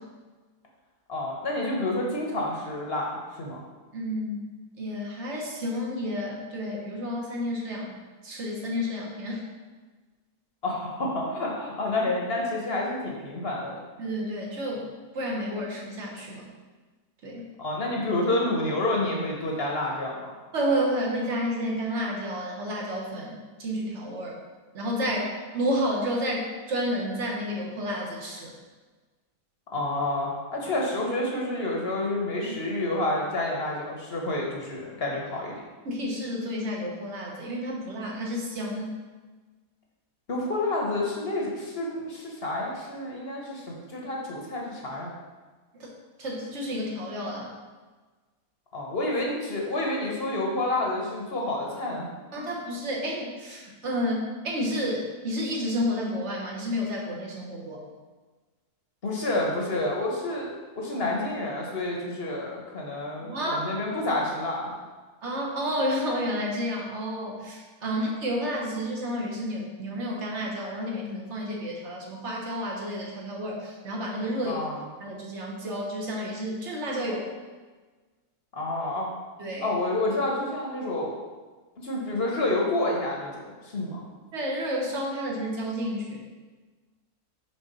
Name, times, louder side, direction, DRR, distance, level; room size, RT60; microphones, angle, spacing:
voice 1, 1.1-3.6 10.6-13.8 17.6-20.3 29.7-35.5 40.3-45.1 48.7-52.1 52.4-52.5 59.0-64.7 74.4-74.8 78.5-79.1 79.6-81.2 81.8-84.0, left 2 dB, 45° left, -2 dB, 1.1 m, -29 dB
voice 2, 3.9-4.4 4.8-7.9 8.2-9.4 14.0-16.5 17.2-17.5 20.5-24.4 24.7-28.5 32.5-32.6 35.8-39.0 45.7-45.9 46.2-47.6 52.3-57.8 63.2-63.6 65.2-74.6 75.0-77.3 79.4-79.7 84.3-86.2, equal, 50° right, -2 dB, 1.4 m, -30 dB
5.5 x 3.9 x 5.4 m, 1.3 s
omnidirectional pair, 1.7 m